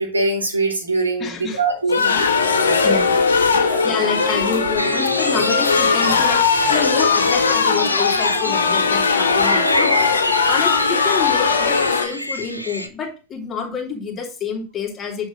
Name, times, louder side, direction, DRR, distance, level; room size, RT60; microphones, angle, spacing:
voice 1, 0.0-1.3 1.6-2.0 2.6-3.0 3.6-3.8, right 3 dB, 80° right, 0 dB, 2.9 m, -22 dB
voice 2, 1.2-1.6 1.9-2.2 2.8-3.2 3.8-10.2 10.4-15.3, left 5 dB, 25° left, 1 dB, 2.7 m, -28 dB
sound 1, 1.9-12.1, left 5 dB, 70° left, 1.3 m, -18 dB
sound 2, 4.8-12.9, equal, 90° left, 1.0 m, -27 dB
9.0 x 5.7 x 3.8 m, 0.33 s
figure-of-eight pair, 90°, 0 cm